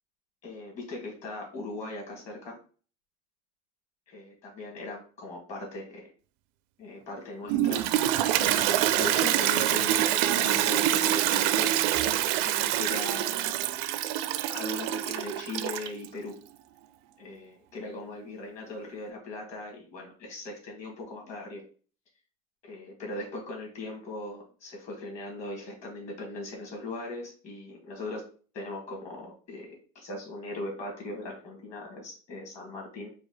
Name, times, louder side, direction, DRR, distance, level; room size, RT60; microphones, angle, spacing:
voice 1, 0.4-2.6 4.1-6.1 6.8-7.9 8.4-12.1 12.4-13.5 14.5-16.3 17.2-21.6 22.6-28.2 28.5-33.1, left 2 dB, 40° left, -1 dB, 1.9 m, -39 dB
Toilet flush, 7.5-16.1, right 13 dB, 60° right, 0.4 m, -26 dB
4.8 x 2.4 x 4.0 m, 0.40 s
cardioid pair, 155°, 19 cm